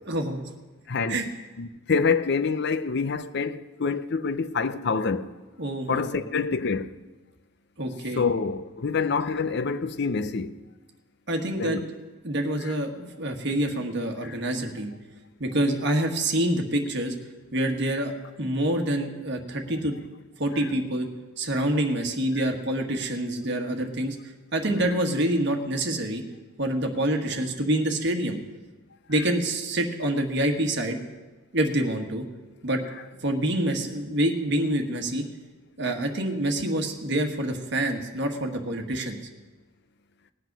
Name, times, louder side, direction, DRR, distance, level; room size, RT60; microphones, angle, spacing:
voice 1, 0.1-0.4 1.1-1.3 5.6-6.2 7.8-8.2 11.3-11.8 12.2-14.9 15.4-17.1 17.5-18.1 18.4-19.9 20.4-21.1 21.4-24.1 24.5-26.2 26.6-28.4 29.1-31.0 31.5-32.3 32.6-32.8 33.2-35.2 35.8-39.2, right 1 dB, 55° right, 1.6 m, -26 dB
voice 2, 0.9-1.2 1.6-5.3 5.9-6.9 8.2-10.5 11.5-11.8 12.6-12.7 14.2-14.4 24.6-25.0, left 5 dB, 55° left, 0.6 m, -27 dB
18.5 x 8.0 x 6.1 m
head